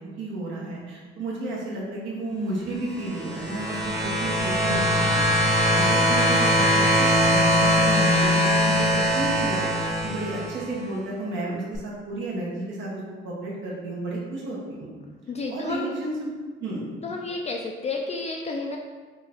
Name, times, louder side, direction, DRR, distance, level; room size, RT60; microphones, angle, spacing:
voice 1, 0.0-5.2 5.5-14.9 15.5-16.3 16.6-16.8, right 2 dB, 70° right, -4 dB, 1.1 m, -32 dB
sound 1, 2.9-10.7 11.7-11.8, equal, 15° right, 0.9 m, -21 dB
voice 2, 15.3-15.9 17.0-18.8, left 3 dB, 35° left, 1 dB, 0.3 m, -31 dB
3.6 x 2.5 x 3.4 m, 1.4 s
cardioid pair, 90°, 20 cm